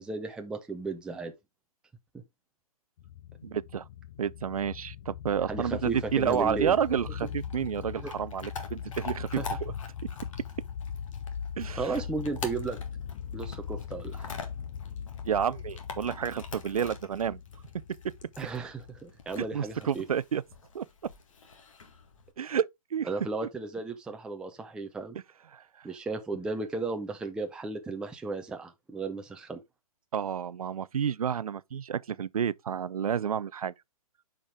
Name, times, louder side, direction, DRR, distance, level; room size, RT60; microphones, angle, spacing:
voice 1, 0.0-1.3 5.5-6.8 8.0-8.1 9.4-9.5 11.8-12.8 13.3-14.3 18.4-20.0 23.1-25.2 25.8-29.6, right 3 dB, 5° right, 0.6 m, -34 dB
sound 1, 3.0-20.0, left 8 dB, 40° left, 0.8 m, -40 dB
voice 2, 3.4-3.8 4.2-9.7 11.6-12.0 15.3-17.4 19.4-20.4 20.7-20.9 22.4-23.1 25.5-25.9 30.1-33.7, right 8 dB, 70° right, 0.5 m, -30 dB
Chewing mastication / Dog, 5.8-22.3, left 4 dB, 60° left, 2.0 m, -46 dB
8.7 x 5.1 x 3.4 m
figure-of-eight pair, 130°, 19 cm